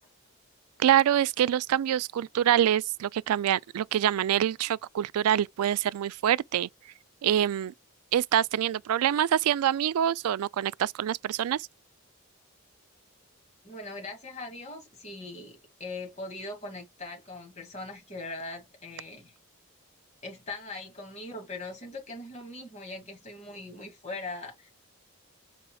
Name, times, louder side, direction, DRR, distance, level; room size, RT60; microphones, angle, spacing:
voice 1, 0.8-6.7 7.2-7.7 8.1-11.7, right 10 dB, 85° right, 0.3 m, -25 dB
voice 2, 13.6-19.3 20.2-24.7, left 2 dB, 30° left, 2.2 m, -40 dB
5.5 x 4.1 x 2.3 m
head